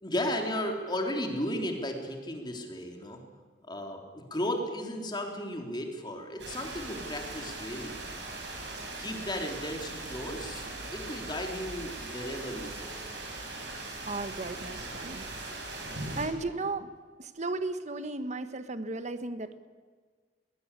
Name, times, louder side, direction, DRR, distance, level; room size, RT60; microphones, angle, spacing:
voice 1, 0.0-3.2 3.7-8.0 9.0-10.6 10.9-13.0 14.5-14.6 15.5-15.6, left 1 dB, 25° left, 3 dB, 3.5 m, -35 dB
sound 1, 6.4-16.3, right 2 dB, 85° right, 7.1 m, -40 dB
voice 2, 14.0-15.7 16.1-16.9 17.2-19.6, right 3 dB, 40° right, 10 dB, 1.4 m, -35 dB
21.5 x 20.0 x 8.4 m, 1.5 s
head